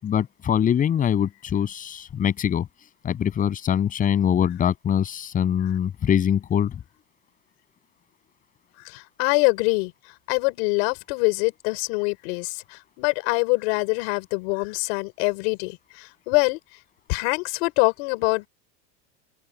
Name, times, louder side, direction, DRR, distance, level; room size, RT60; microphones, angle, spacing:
voice 1, 0.0-2.7 3.0-6.8, left 9 dB, 20° left, 7.2 m, -23 dB
voice 2, 8.8-9.9 10.3-16.6 17.1-18.5, left 31 dB, 55° left, 5.2 m, -24 dB
supercardioid pair, 170°, 35 cm